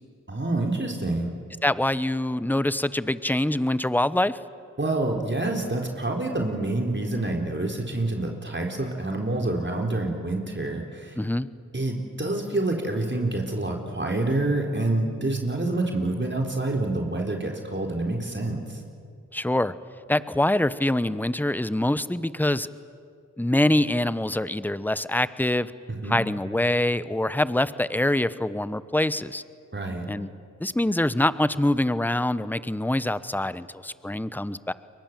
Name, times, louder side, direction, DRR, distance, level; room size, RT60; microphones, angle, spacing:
voice 1, 0.3-1.3 4.8-11.2 11.7-18.8 25.9-26.2 29.7-30.1, right 2 dB, 35° right, 1 dB, 4.0 m, -27 dB
voice 2, 1.6-4.4 11.2-11.5 19.3-19.7 20.1-22.7 23.4-25.7 26.1-29.4 30.1-30.3 30.6-34.7, left 1 dB, 5° left, 15 dB, 1.0 m, -24 dB
30.0 x 23.0 x 7.6 m, 2.3 s
cardioid pair, 40°, 33 cm